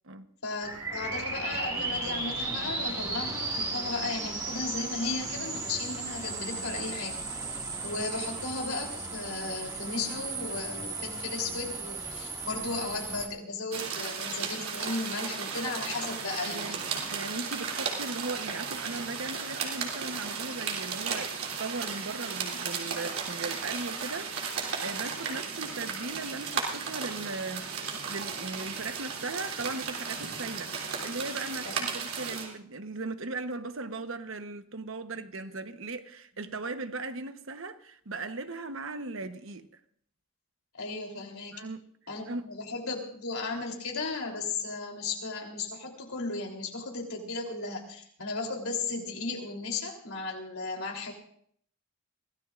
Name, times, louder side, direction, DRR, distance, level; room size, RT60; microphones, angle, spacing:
voice 1, 0.4-7.2 7.8-17.0 31.6-31.7 35.3-35.6 40.8-41.7 42.1-51.1, left 3 dB, 85° left, 3.5 m, -35 dB
sound 1, 0.6-13.3, right 3 dB, 20° right, 2.1 m, -35 dB
sound 2, 13.7-32.5, right 5 dB, 80° right, 3.2 m, -35 dB
voice 2, 16.5-16.8 17.1-27.7 28.1-39.7 41.5-41.8 42.3-42.5, right 3 dB, 65° right, 1.1 m, -38 dB
24.0 x 17.5 x 2.5 m
head